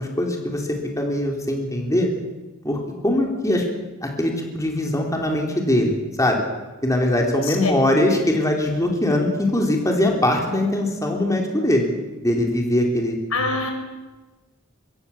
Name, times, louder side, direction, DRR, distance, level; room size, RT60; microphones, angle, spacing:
voice 1, 0.0-2.1 2.6-3.6 4.0-6.4 6.8-11.8 12.2-13.2, left 1 dB, 15° left, 1 dB, 3.8 m, -21 dB
voice 2, 7.4-7.7 8.9-9.0 13.3-13.7, left 3 dB, 85° left, 4 dB, 6.1 m, -25 dB
25.5 x 22.5 x 7.3 m, 1.2 s
head